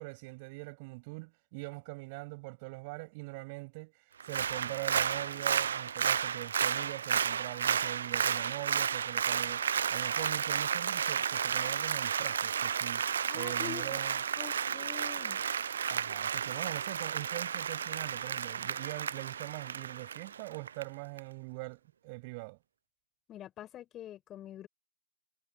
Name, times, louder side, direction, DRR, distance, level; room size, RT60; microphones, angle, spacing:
voice 1, 0.0-14.2 15.9-22.6, right 28 dB, 25° right, 7.9 m, -43 dB
Applause, 4.2-20.8 21.2-21.3, right 8 dB, 50° right, 0.6 m, -32 dB
voice 2, 13.3-14.0 14.4-15.4 23.3-24.7, left 12 dB, 15° left, 6.3 m, -45 dB
figure-of-eight pair, 140°, 0 cm